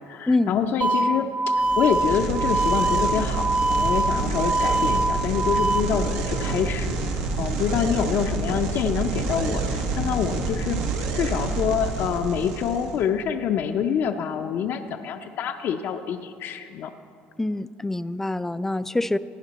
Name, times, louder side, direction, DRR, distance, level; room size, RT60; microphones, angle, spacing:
voice 1, 0.1-10.8 11.1-16.9, left 8 dB, 60° left, 6 dB, 0.5 m, -26 dB
sound 1, 0.8-5.8, right 2 dB, 30° right, 0.6 m, -24 dB
sound 2, 1.6-13.0, right 4 dB, 80° right, 1.3 m, -28 dB
sound 3, 5.6-10.9, right 4 dB, 60° right, 1.0 m, -36 dB
voice 2, 17.4-19.2, left 2 dB, 10° left, 15 dB, 0.3 m, -25 dB
15.5 x 9.8 x 4.1 m, 2.4 s
cardioid pair, 100°, 4 cm